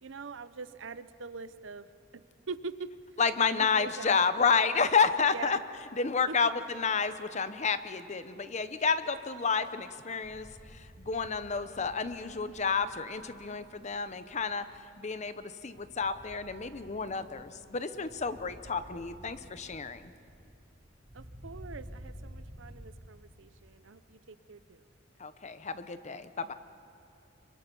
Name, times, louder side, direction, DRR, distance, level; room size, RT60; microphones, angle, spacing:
voice 1, 0.0-1.9 2.1-2.2 2.5-2.9 3.4-4.3 5.3-5.6 6.3-6.5 21.1-24.9, right 4 dB, 75° right, 13 dB, 0.7 m, -43 dB
voice 2, 3.2-5.6 5.9-10.5 10.7-14.7 15.0-20.1 25.2-26.5, left 5 dB, 35° left, 12 dB, 0.8 m, -30 dB
sound 1, 10.2-23.0, equal, 40° right, 3.6 m, -52 dB
26.0 x 23.5 x 5.4 m, 2.5 s
head